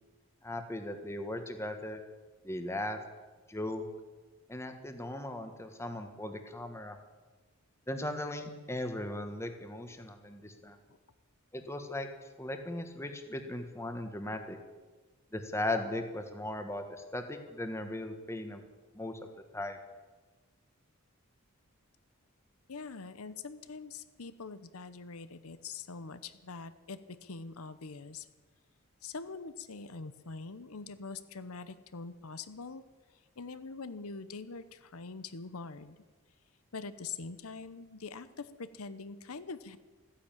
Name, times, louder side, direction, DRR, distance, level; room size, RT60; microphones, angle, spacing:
voice 1, 0.4-2.0 2.4-3.0 3.5-3.9 4.5-7.0 7.9-10.8 11.5-12.1 12.4-14.6 15.3-16.8 17.1-18.6 18.9-19.1 19.5-19.8, left 1 dB, 10° left, 7 dB, 1.3 m, -37 dB
voice 2, 22.7-28.3 29.0-32.8 33.4-36.0 36.7-39.8, left 4 dB, 75° left, 13 dB, 0.8 m, -44 dB
15.0 x 10.0 x 9.0 m, 1.3 s
head